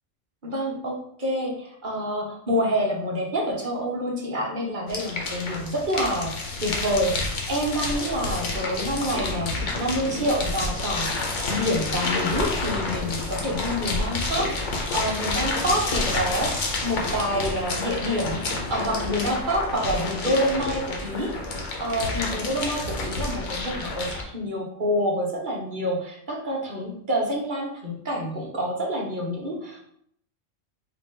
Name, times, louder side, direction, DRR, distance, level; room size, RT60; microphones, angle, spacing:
voice 1, 0.4-6.3 6.6-7.2 7.5-11.1 11.5-14.5 14.9-16.5 16.8-21.3 21.8-29.8, equal, 40° right, -2 dB, 1.1 m, -27 dB
sound 1, 4.9-24.2, left 3 dB, 70° left, 1.2 m, -29 dB
4.8 x 2.5 x 3.7 m, 0.67 s
omnidirectional pair, 1.3 m